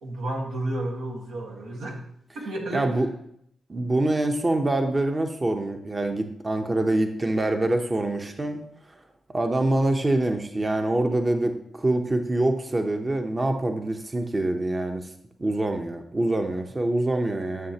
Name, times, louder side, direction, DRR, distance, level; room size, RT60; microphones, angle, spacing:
voice 1, 0.0-2.0 2.4-2.9, right 1 dB, 90° right, -1 dB, 1.6 m, -31 dB
voice 2, 2.7-3.1 3.7-8.6 8.9-9.0 9.3-15.1 15.4-17.7, right 2 dB, 30° right, 5 dB, 0.8 m, -25 dB
11.0 x 6.4 x 2.9 m, 0.70 s
cardioid pair, 60°, 0 cm